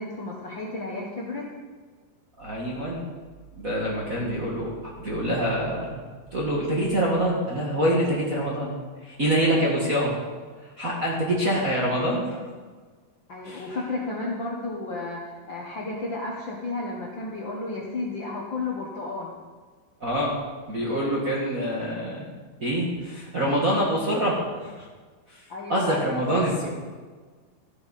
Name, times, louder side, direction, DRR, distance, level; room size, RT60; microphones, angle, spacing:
voice 1, 0.0-1.5 13.3-19.3 25.5-26.2, left 2 dB, 55° left, -3 dB, 1.3 m, -32 dB
voice 2, 2.4-3.0 3.6-4.7 5.0-6.0 6.3-8.7 9.0-10.1 10.6-12.4 13.4-13.7 20.0-20.3 20.7-22.3 22.6-24.9 25.3-25.4 25.7-26.5, equal, 40° right, -5 dB, 1.3 m, -25 dB
14.0 x 11.0 x 4.2 m, 1.5 s
omnidirectional pair, 4.0 m